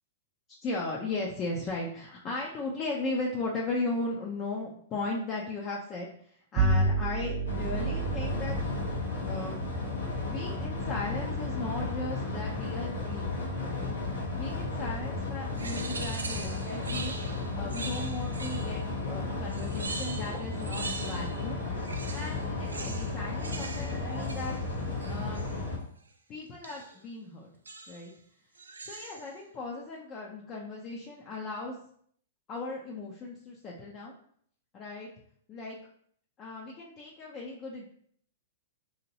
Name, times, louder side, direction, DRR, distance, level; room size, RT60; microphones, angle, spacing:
voice 1, 0.6-8.6 9.3-9.6 10.2-13.3 13.6-13.9 14.4-17.2 17.5-21.6 22.1-24.6 25.1-25.5 26.3-27.5 27.9-28.1 28.8-31.8 32.5-34.1 34.7-35.1 35.5-35.8 36.4-37.9, left 2 dB, 30° left, -3 dB, 0.6 m, -37 dB
Bowed string instrument, 6.6-12.2, right 2 dB, 40° right, 0.6 m, -32 dB
sound 1, 7.5-25.8, left 3 dB, 85° left, 1.2 m, -34 dB
sound 2, 15.6-18.9 19.5-21.5 21.8-25.6 26.6-27.0 27.6-28.1 28.5-29.3, right 3 dB, 90° right, 0.4 m, -42 dB
2.9 x 2.8 x 2.8 m, 0.62 s
hypercardioid pair, 110°, 0 cm